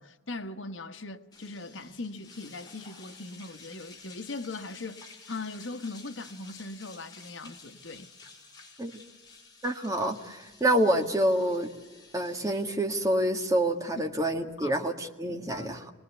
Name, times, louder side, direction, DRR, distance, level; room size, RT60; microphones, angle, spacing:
voice 1, 0.0-8.1 14.0-14.1 14.6-14.8 15.3-15.8, left 3 dB, 75° left, 1.3 m, -40 dB
sound 1, 1.3-14.8, left 4 dB, 20° left, 5.0 m, -52 dB
voice 2, 9.6-11.7 12.1-15.9, right 1 dB, 15° right, 1.7 m, -27 dB
26.0 x 20.0 x 8.2 m
head